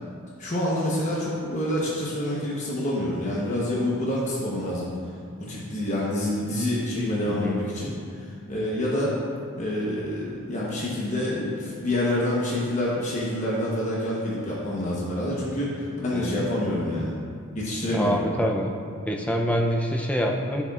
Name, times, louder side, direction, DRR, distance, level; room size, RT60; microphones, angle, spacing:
voice 1, 0.4-4.9 5.4-9.1 9.5-17.2 17.5-18.2, left 1 dB, 35° left, -6 dB, 1.0 m, -27 dB
voice 2, 7.3-7.6 16.1-16.5 17.8-18.7 19.1-20.6, equal, 5° left, 1 dB, 0.4 m, -26 dB
9.9 x 6.9 x 2.4 m, 2.3 s
head